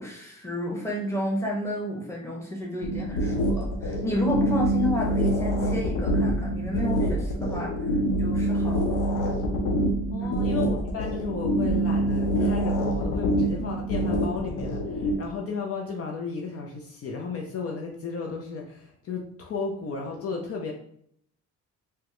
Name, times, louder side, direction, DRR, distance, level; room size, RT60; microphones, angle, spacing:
voice 1, 0.0-7.7 8.2-9.4 10.2-10.3, equal, 10° left, -2 dB, 1.0 m, -31 dB
sound 1, 2.8-15.1, right 1 dB, 85° left, 0.7 m, -25 dB
voice 2, 10.1-20.7, left 4 dB, 50° left, 1 dB, 0.5 m, -34 dB
3.4 x 2.1 x 2.9 m, 0.68 s
cardioid pair, 90°, 30 cm